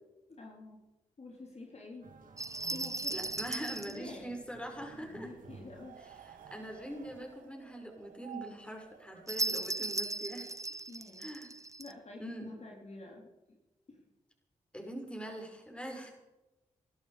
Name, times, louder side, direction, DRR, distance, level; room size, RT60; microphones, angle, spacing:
voice 1, 0.3-0.8 1.2-2.1 2.7-3.1 3.8-4.4 5.0-5.9 10.9-11.3 11.8-13.6 13.9-14.0, left 2 dB, 50° left, 0 dB, 3.7 m, -48 dB
sound 1, 2.0-7.2, right 4 dB, 70° right, 2.9 m, -55 dB
sound 2, 2.4-4.0 9.3-11.9, right 2 dB, 20° right, 0.9 m, -37 dB
voice 2, 3.1-5.3 6.3-10.5 11.2-11.5 12.2-12.5 14.7-16.1, right 1 dB, 10° left, 2 dB, 5.9 m, -43 dB
sound 3, 5.4-10.3, right 9 dB, 85° right, 1.1 m, -54 dB
21.0 x 12.5 x 5.1 m, 1.0 s
supercardioid pair, 40°, 14 cm